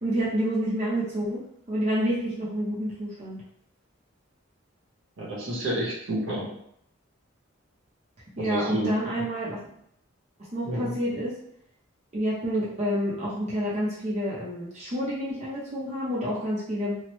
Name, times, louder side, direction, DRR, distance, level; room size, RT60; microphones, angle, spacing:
voice 1, 0.0-3.4 8.4-9.6 10.4-11.3 12.1-17.0, equal, 30° right, -7 dB, 0.6 m, -28 dB
voice 2, 5.2-6.5 8.4-9.0 10.6-10.9, right 1 dB, 65° right, -4 dB, 0.9 m, -29 dB
3.0 x 2.1 x 3.0 m, 0.70 s
head